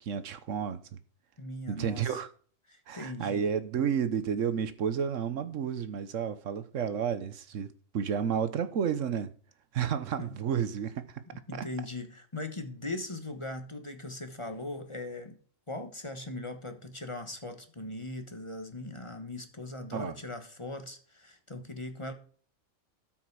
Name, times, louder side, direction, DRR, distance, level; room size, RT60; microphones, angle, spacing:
voice 1, 0.0-1.0 1.7-2.3 2.9-9.3 9.7-11.2 11.5-11.7 19.9-20.2, right 7 dB, 70° right, 1.2 m, -31 dB
voice 2, 1.4-2.2 2.7-3.4 10.2-10.3 11.5-15.4 15.7-22.1, left 2 dB, 25° left, 1.3 m, -39 dB
13.0 x 5.9 x 4.7 m
omnidirectional pair, 1.4 m